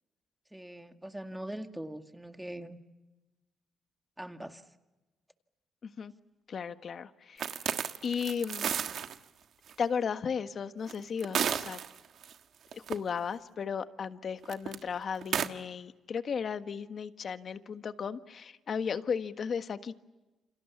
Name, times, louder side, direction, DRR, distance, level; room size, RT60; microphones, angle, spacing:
voice 1, 0.5-2.8 4.2-4.6, right 1 dB, 5° right, 7 dB, 2.0 m, -42 dB
voice 2, 6.5-8.7 9.8-11.8 12.7-20.0, left 6 dB, 50° left, 10 dB, 1.4 m, -35 dB
sound 1, 7.4-9.2 9.7-9.8 10.9-12.3 12.7-13.0 14.4-14.8 15.2-15.5, right 8 dB, 65° right, 1.4 m, -32 dB
29.0 x 27.0 x 7.2 m, 1.1 s
cardioid pair, 90°, 0 cm